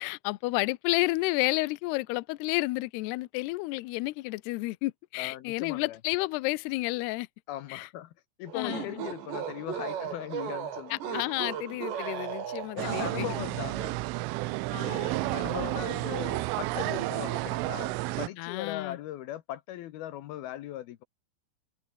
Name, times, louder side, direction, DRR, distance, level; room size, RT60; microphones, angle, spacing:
voice 1, 0.0-7.3 7.7-7.9 8.5-9.0 10.9-13.3 14.7-15.3 18.4-19.0, left 22 dB, 90° left, 2.3 m, -31 dB
voice 2, 5.2-6.0 7.5-8.1 8.4-11.2 12.8-14.0 15.2-21.0, left 13 dB, 70° left, 2.4 m, -39 dB
sound 1, 8.5-13.0, right 8 dB, 65° right, 5.3 m, -36 dB
sound 2, 12.8-18.3, right 20 dB, 90° right, 3.2 m, -31 dB
omnidirectional pair, 5.6 m